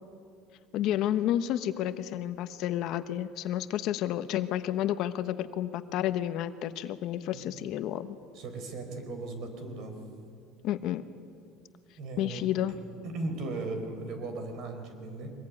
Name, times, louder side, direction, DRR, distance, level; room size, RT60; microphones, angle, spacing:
voice 1, 0.7-8.2 10.6-11.0 12.2-12.7, left 12 dB, 55° left, 11 dB, 1.1 m, -30 dB
voice 2, 8.3-10.0 12.0-12.8 13.0-15.3, right 2 dB, 55° right, 6 dB, 4.8 m, -37 dB
24.0 x 20.0 x 9.8 m, 2.3 s
cardioid pair, 140°, 0 cm